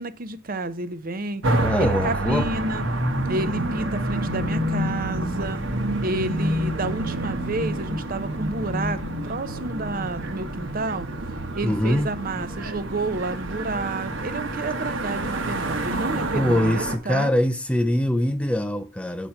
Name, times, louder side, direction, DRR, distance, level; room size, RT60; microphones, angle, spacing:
voice 1, 0.0-2.9 3.3-5.6 6.0-11.1 11.5-17.3, right 2 dB, 45° right, 0.7 m, -30 dB
sound 1, 1.4-17.0, right 1 dB, 65° right, 1.2 m, -28 dB
voice 2, 1.6-2.5 11.6-12.1 16.3-19.3, left 1 dB, 5° left, 0.4 m, -23 dB
8.1 x 4.3 x 5.7 m
head